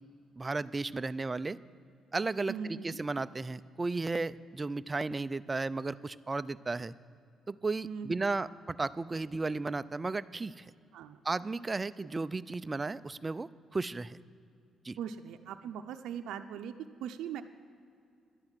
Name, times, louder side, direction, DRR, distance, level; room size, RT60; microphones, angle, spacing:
voice 1, 0.4-1.6 2.1-6.9 7.5-10.7 11.2-14.2 14.8-15.0, right 3 dB, 25° right, 14 dB, 0.4 m, -34 dB
voice 2, 2.5-3.0 7.8-8.3 10.9-11.2 15.0-16.7 17.0-17.4, right 8 dB, 85° right, 7 dB, 0.6 m, -40 dB
11.5 x 9.8 x 7.3 m, 2.5 s
cardioid pair, 90°, 0 cm